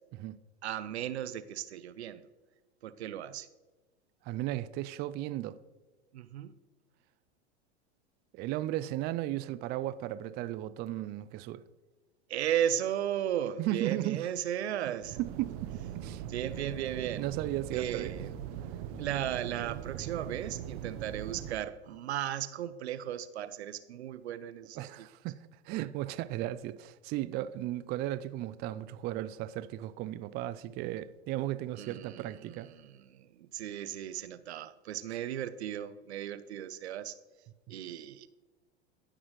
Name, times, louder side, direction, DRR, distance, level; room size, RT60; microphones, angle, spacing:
voice 1, 0.6-2.2 2.8-3.5 6.1-6.5 12.3-15.2 16.3-17.3 17.7-18.3 19.0-25.1 31.8-37.1 37.7-38.3, right 10 dB, 75° right, 0.7 m, -35 dB
voice 2, 4.2-5.6 8.3-11.6 13.6-14.2 15.2-16.2 17.2-18.2 24.8-32.7, right 14 dB, 30° right, 0.4 m, -35 dB
sound 1, 15.0-21.6, right 10 dB, 50° right, 0.9 m, -41 dB
16.5 x 6.1 x 3.1 m
hypercardioid pair, 95°, 33 cm